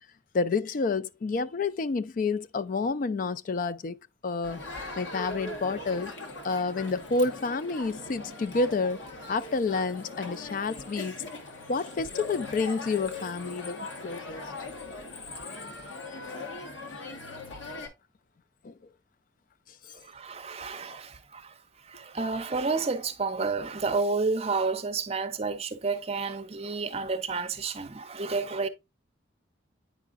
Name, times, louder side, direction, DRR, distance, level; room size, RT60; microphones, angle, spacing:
voice 1, 0.3-4.0 4.2-4.6 4.9-6.1 6.4-9.0 9.3-11.2 11.7-14.5 18.6-18.7, left 4 dB, 45° left, 0.3 m, -29 dB
Crowd, 4.4-17.9, left 3 dB, 75° left, 1.2 m, -40 dB
voice 2, 19.9-21.6 21.8-28.7, right 4 dB, 30° right, 0.6 m, -30 dB
9.1 x 4.8 x 2.4 m
head